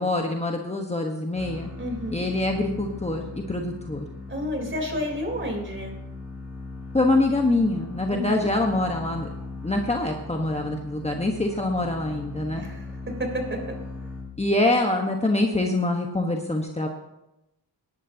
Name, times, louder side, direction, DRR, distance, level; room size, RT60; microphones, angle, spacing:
voice 1, 0.0-1.7 2.1-4.0 6.9-9.3 9.6-12.6 14.4-16.9, left 2 dB, 15° left, 2 dB, 1.2 m, -25 dB
sound 1, 1.3-14.7, left 3 dB, 5° right, 5.5 m, -39 dB
voice 2, 1.8-2.2 4.3-5.9 8.1-8.3 12.5-13.6, equal, 25° right, 2 dB, 3.7 m, -30 dB
19.5 x 11.5 x 2.8 m, 0.91 s
cardioid pair, 80°, 43 cm